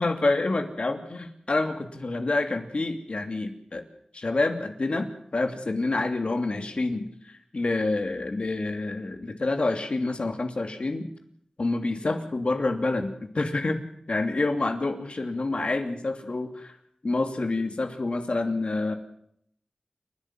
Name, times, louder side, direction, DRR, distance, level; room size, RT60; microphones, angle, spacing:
voice 1, 0.0-3.8 4.1-11.1 11.6-16.7 17.0-18.9, left 2 dB, 60° left, 6 dB, 2.8 m, -28 dB
29.0 x 12.0 x 7.6 m, 0.69 s
cardioid pair, 45°, 2 cm